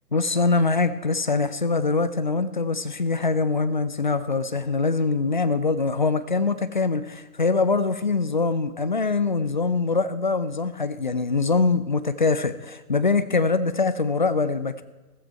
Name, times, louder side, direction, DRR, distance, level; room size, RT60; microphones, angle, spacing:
voice 1, 0.1-14.8, left 4 dB, 30° left, 13 dB, 0.4 m, -23 dB
15.5 x 14.0 x 4.6 m, 1.2 s
figure-of-eight pair, 130°, 49 cm